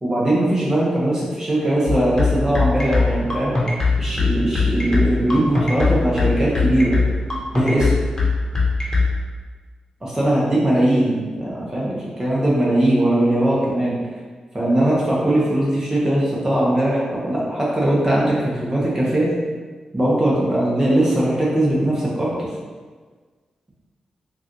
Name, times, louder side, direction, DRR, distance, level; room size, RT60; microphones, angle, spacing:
voice 1, 0.0-3.5 4.0-7.0 7.5-7.9 10.0-14.0 14.5-19.3 19.9-22.5, right 1 dB, 25° right, -6 dB, 1.2 m, -20 dB
sound 1, 1.9-9.1, left 4 dB, 25° left, 1.1 m, -19 dB
3.9 x 2.6 x 3.1 m, 1.5 s
supercardioid pair, 40°, 2 cm